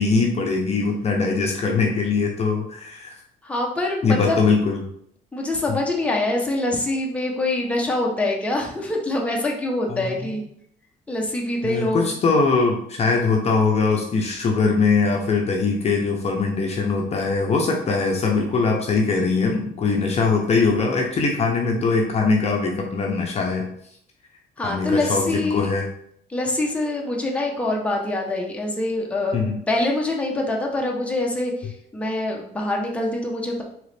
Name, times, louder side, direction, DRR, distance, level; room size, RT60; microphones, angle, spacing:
voice 1, 0.0-3.2 4.0-4.8 9.9-10.1 11.6-23.7 24.6-25.9 29.3-29.6, left 4 dB, 40° left, 1 dB, 0.6 m, -21 dB
voice 2, 3.4-4.4 5.3-10.4 11.1-12.1 24.6-25.7 26.3-29.4 29.7-33.6, left 2 dB, 5° left, -1 dB, 0.8 m, -24 dB
3.8 x 3.0 x 3.3 m, 0.68 s
cardioid pair, 110°, 17 cm